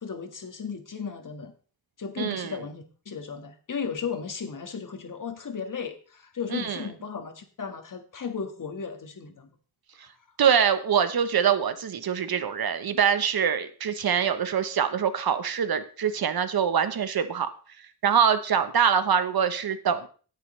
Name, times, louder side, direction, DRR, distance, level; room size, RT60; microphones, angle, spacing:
voice 1, 0.0-1.5 2.0-9.5, left 6 dB, 55° left, 5 dB, 1.7 m, -35 dB
voice 2, 2.2-2.5 6.5-6.8 10.4-17.5 18.0-20.1, right 7 dB, 70° right, 10 dB, 1.1 m, -24 dB
17.5 x 6.6 x 3.3 m, 0.39 s
wide cardioid pair, 110°, 38 cm